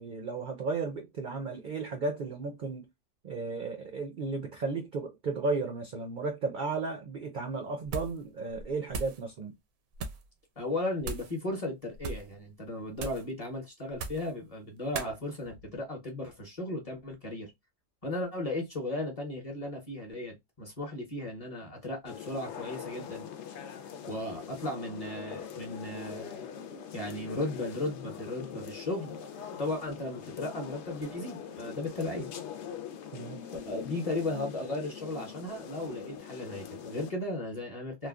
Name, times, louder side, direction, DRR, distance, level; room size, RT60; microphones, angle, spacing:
voice 1, 0.0-2.9 3.2-9.5 33.1-33.4, right 3 dB, 60° right, 0.5 m, -34 dB
sound 1, 7.8-8.2 8.5-9.2 9.9-10.3 11.0-11.4 11.9-12.3 13.0-13.3 13.9-14.3 14.9-15.1, right 3 dB, 90° right, 1.0 m, -38 dB
voice 2, 10.6-17.5 18.0-23.3 24.1-26.4 26.9-29.2 29.6-32.3 33.5-38.1, left 2 dB, 30° left, 0.8 m, -36 dB
sound 2, 22.1-37.1, left 8 dB, 65° left, 0.8 m, -43 dB
3.1 x 2.2 x 2.3 m
omnidirectional pair, 1.4 m